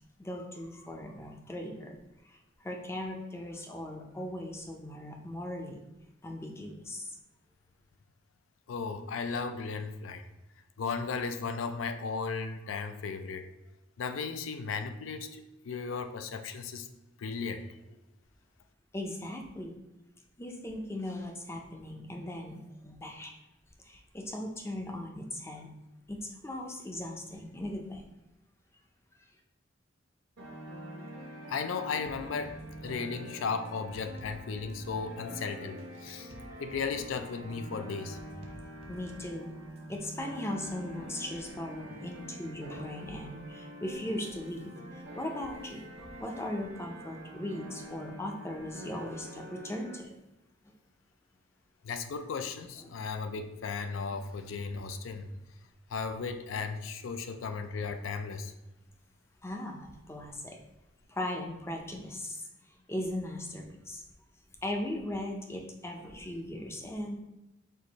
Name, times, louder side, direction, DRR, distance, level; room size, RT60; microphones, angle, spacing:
voice 1, 0.2-1.9 2.2-5.8 6.2-7.2 18.9-19.7 20.4-23.4 23.8-25.7 26.1-28.0 38.9-39.6 39.9-50.1 52.8-52.9 54.1-54.2 59.4-60.6 61.1-64.0 64.6-67.1, left 1 dB, 15° left, 1 dB, 0.4 m, -38 dB
voice 2, 8.7-10.3 10.8-13.5 14.0-16.9 17.2-18.0 31.5-32.6 32.8-36.3 36.6-38.2 51.8-55.3 55.9-58.5, left 5 dB, 80° left, 8 dB, 0.4 m, -35 dB
sound 1, 30.4-50.0, equal, 80° right, 1.0 m, -46 dB
sound 2, 32.1-40.5, right 1 dB, 30° right, 0.6 m, -52 dB
4.6 x 2.5 x 4.0 m, 0.95 s
head